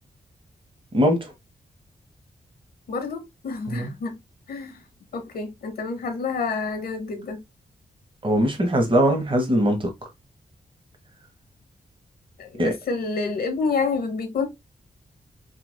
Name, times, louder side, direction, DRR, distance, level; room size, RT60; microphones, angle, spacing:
voice 1, 0.9-1.3 3.7-3.9 8.2-9.9 12.6-12.8, equal, 35° right, 1.3 m, -21 dB
voice 2, 2.9-4.2 4.5-4.8 5.1-7.4 12.4-14.4, left 4 dB, 80° left, 0.9 m, -28 dB
3.2 x 2.8 x 2.2 m
wide cardioid pair, 90°, 16 cm